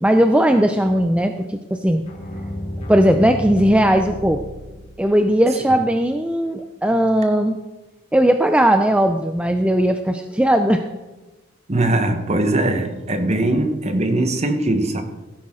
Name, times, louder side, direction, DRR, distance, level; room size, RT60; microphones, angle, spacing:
voice 1, 0.0-2.0 2.9-4.4 5.0-7.6 8.1-10.8, right 1 dB, 5° right, 6 dB, 0.5 m, -17 dB
sound 1, 2.0-5.2, left 1 dB, 30° left, 3.1 m, -31 dB
voice 2, 11.7-15.0, right 2 dB, 35° right, 7 dB, 1.2 m, -20 dB
16.0 x 10.5 x 3.7 m, 1.1 s
head